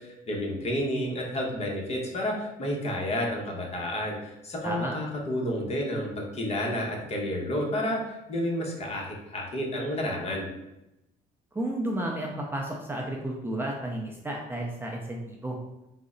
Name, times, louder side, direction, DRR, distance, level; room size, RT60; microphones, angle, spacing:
voice 1, 0.0-10.5, left 1 dB, 40° left, -1 dB, 1.0 m, -30 dB
voice 2, 11.5-15.6, right 1 dB, 15° right, -1 dB, 0.5 m, -32 dB
3.8 x 2.1 x 3.7 m, 0.91 s
cardioid pair, 110°, 17 cm